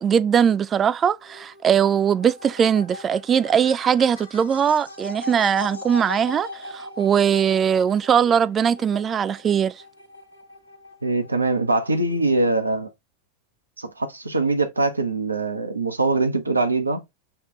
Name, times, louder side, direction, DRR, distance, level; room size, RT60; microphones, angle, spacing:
voice 1, 0.0-9.8, right 8 dB, 25° right, 0.3 m, -20 dB
sound 1, 1.2-12.5, left 2 dB, 80° left, 1.1 m, -40 dB
voice 2, 11.0-12.9 13.8-17.0, right 2 dB, 80° right, 0.8 m, -23 dB
5.7 x 2.4 x 2.9 m
figure-of-eight pair, 90°, 0 cm